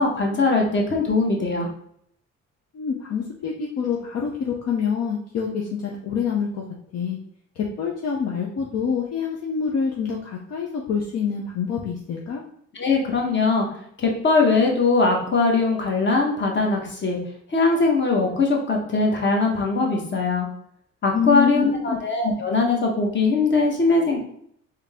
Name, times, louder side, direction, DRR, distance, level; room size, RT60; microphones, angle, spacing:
voice 1, 0.0-1.7 12.8-13.7 14.0-17.2 17.5-20.5 21.0-24.2, left 3 dB, 40° left, 0 dB, 1.1 m, -21 dB
voice 2, 2.7-6.6 6.9-7.2 7.6-12.4 21.1-22.0, left 6 dB, 55° left, -1 dB, 0.7 m, -26 dB
3.7 x 2.8 x 3.5 m, 0.67 s
cardioid pair, 90°, 30 cm